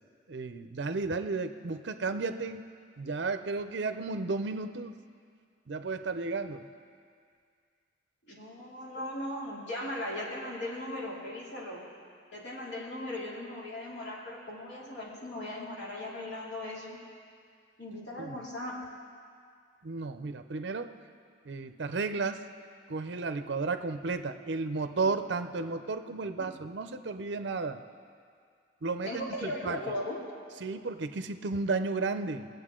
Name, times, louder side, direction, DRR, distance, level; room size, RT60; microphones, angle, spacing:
voice 1, 0.3-2.6 3.0-4.9 5.7-6.6 18.2-18.4 19.8-20.9 21.5-22.4 22.9-27.8 28.8-29.8 30.6-32.5, right 3 dB, 65° right, 10 dB, 0.5 m, -33 dB
voice 2, 8.3-11.8 12.3-17.0 17.8-18.8 23.1-23.5 24.9-25.1 26.0-26.5 29.0-30.2, left 1 dB, 65° left, -5 dB, 2.6 m, -38 dB
20.5 x 7.8 x 3.7 m, 2.2 s
head